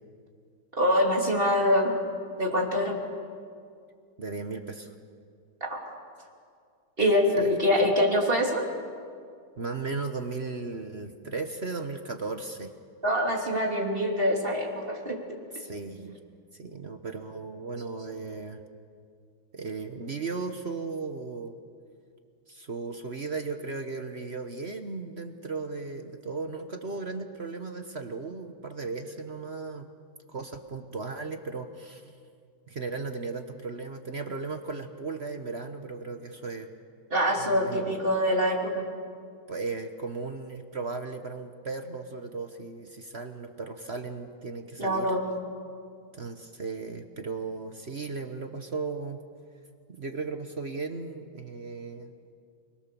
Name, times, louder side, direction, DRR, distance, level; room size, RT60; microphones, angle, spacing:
voice 1, 0.8-2.0 2.4-2.9 5.6-5.9 7.0-8.6 13.0-15.2 37.1-38.9 44.8-45.2, equal, 25° right, -1 dB, 3.4 m, -24 dB
voice 2, 4.2-4.9 7.4-7.5 9.6-12.7 15.5-16.2 16.5-18.6 19.5-21.5 22.5-29.9 30.3-32.1 32.7-36.7 37.4-37.9 39.5-45.1 46.1-49.2 49.9-52.1, right 4 dB, 40° right, 6 dB, 1.0 m, -36 dB
29.5 x 21.5 x 7.0 m, 2.3 s
omnidirectional pair, 2.3 m